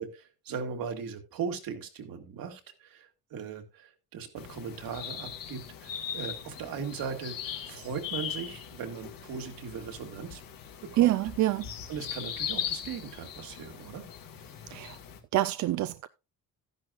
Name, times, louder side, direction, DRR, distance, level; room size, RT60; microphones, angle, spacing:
voice 1, 0.0-10.4 10.8-11.1 11.9-14.0, right 6 dB, 70° right, 2.1 m, -38 dB
sound 1, 4.4-15.2, left 9 dB, 65° left, 1.8 m, -40 dB
voice 2, 11.0-11.7 14.7-15.0 15.3-16.1, right 15 dB, 55° right, 0.4 m, -26 dB
13.0 x 10.5 x 2.5 m
cardioid pair, 155°, 35 cm